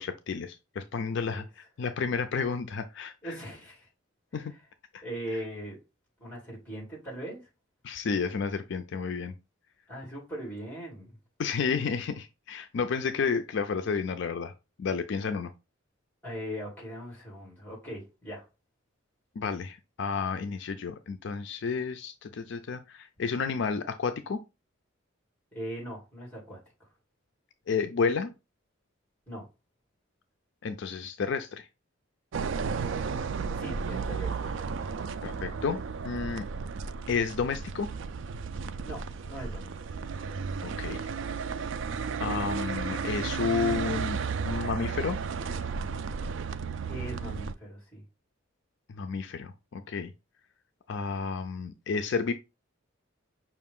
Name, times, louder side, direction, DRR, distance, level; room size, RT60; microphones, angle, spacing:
voice 1, 0.0-3.4 4.3-4.5 4.9-5.0 7.8-9.3 11.4-14.5 14.8-15.5 19.4-24.4 27.7-28.3 30.6-31.7 35.2-36.5 37.1-37.9 40.6-41.1 42.2-44.2 44.4-45.2 48.9-50.1 50.9-52.3, left 5 dB, 60° left, 0.4 m, -31 dB
voice 2, 3.2-3.9 5.0-5.8 6.2-7.5 9.9-11.2 16.2-18.5 25.5-26.9 29.3-29.5 33.6-34.4 38.8-39.8 46.9-48.0, right 1 dB, 10° left, 2.5 m, -40 dB
sound 1, 32.3-47.5, right 5 dB, 65° right, 0.3 m, -33 dB
5.8 x 2.5 x 3.6 m
head